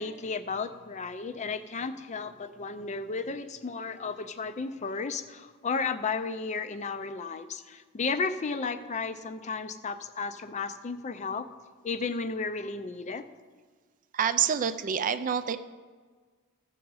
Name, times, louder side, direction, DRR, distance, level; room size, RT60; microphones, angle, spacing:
voice 1, 0.0-11.5 11.8-13.3, left 4 dB, 30° left, 11 dB, 0.4 m, -33 dB
voice 2, 14.1-15.6, right 8 dB, 35° right, 12 dB, 0.4 m, -27 dB
15.5 x 6.1 x 4.7 m, 1.5 s
head